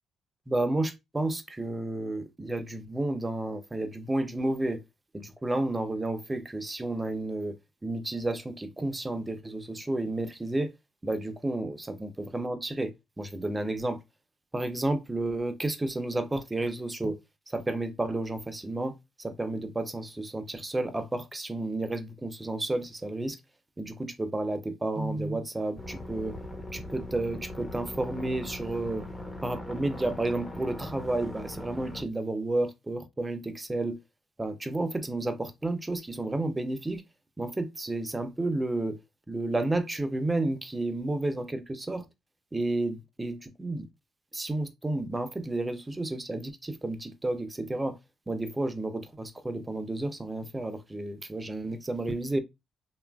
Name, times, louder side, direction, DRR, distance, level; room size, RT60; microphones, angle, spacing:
voice 1, 0.5-4.8 5.1-7.5 7.8-10.7 11.0-14.0 14.5-17.2 17.5-23.4 23.8-26.4 26.7-29.0 29.4-34.0 34.4-37.0 37.4-39.0 39.3-42.0 42.5-43.9 44.3-48.0 48.3-52.4, right 2 dB, 15° right, 0.5 m, -31 dB
sound 1, 25.8-32.0, left 1 dB, 20° left, 0.7 m, -40 dB
2.9 x 2.4 x 2.2 m
cardioid pair, 90°, 0 cm